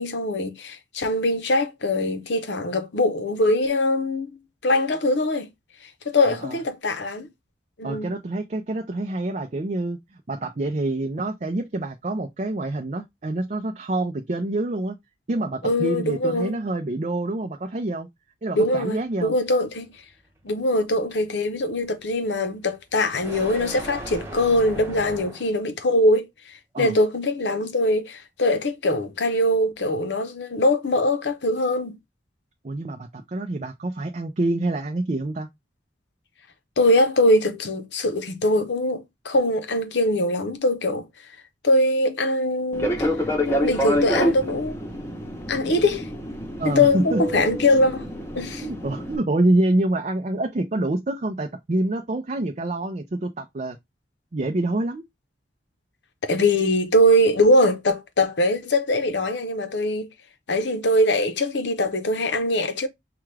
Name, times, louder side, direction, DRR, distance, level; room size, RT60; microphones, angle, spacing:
voice 1, 0.0-4.3 4.6-5.5 6.1-7.3 7.8-8.1 15.6-16.5 18.5-19.9 20.4-26.3 26.8-32.0 36.8-41.1 41.6-43.0 43.5-44.8 45.5-46.1 46.6-48.1 48.3-48.7 56.2-60.1 60.5-62.9, left 1 dB, 75° left, 0.8 m, -22 dB
voice 2, 6.2-6.6 7.8-10.0 10.3-15.0 15.3-18.1 18.4-19.3 26.7-26.9 32.6-35.5 46.6-47.6 48.6-53.8 54.3-55.0, right 2 dB, 40° right, 0.5 m, -26 dB
sound 1, 18.7-25.7, right 1 dB, 15° right, 0.9 m, -40 dB
Fixed-wing aircraft airplane, 42.7-49.2, equal, 15° left, 0.8 m, -27 dB
5.8 x 2.4 x 3.2 m
head